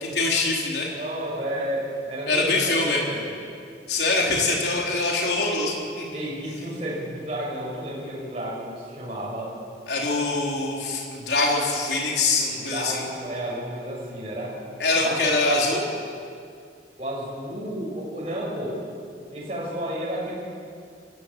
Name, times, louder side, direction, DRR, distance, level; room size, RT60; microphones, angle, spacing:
voice 1, 0.2-0.9 2.3-3.0 3.9-6.0 9.9-13.0 14.8-15.8, left 2 dB, 70° left, -2 dB, 3.6 m, -23 dB
voice 2, 1.0-3.4 6.1-9.5 12.4-14.6 15.0-15.3 17.0-18.8 19.3-20.3, right 1 dB, 35° right, -6 dB, 6.2 m, -32 dB
24.0 x 15.5 x 9.0 m, 2.3 s
head